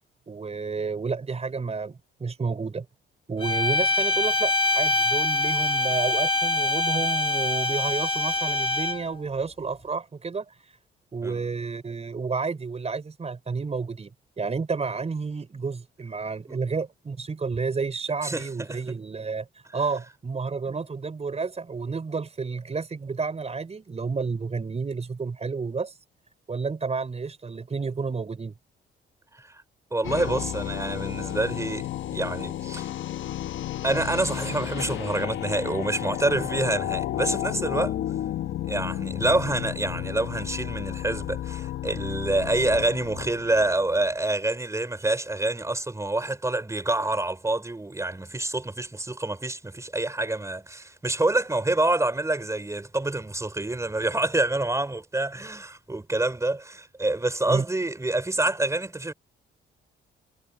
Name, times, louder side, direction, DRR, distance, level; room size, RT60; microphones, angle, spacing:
voice 1, 0.3-2.9 3.3-10.5 11.1-14.1 14.4-19.5 19.7-25.9 26.5-28.5 57.5-57.6, right 4 dB, 30° right, 5.4 m, -30 dB
sound 1, 3.4-9.2, left 2 dB, 25° left, 1.6 m, -24 dB
voice 2, 18.2-18.9 20.7-20.8 29.3-29.4 29.9-32.9 33.8-38.0 38.7-59.1, right 2 dB, 15° right, 5.6 m, -27 dB
sound 2, 30.0-44.1, left 12 dB, 75° left, 1.1 m, -32 dB
cardioid pair, 90°, 20 cm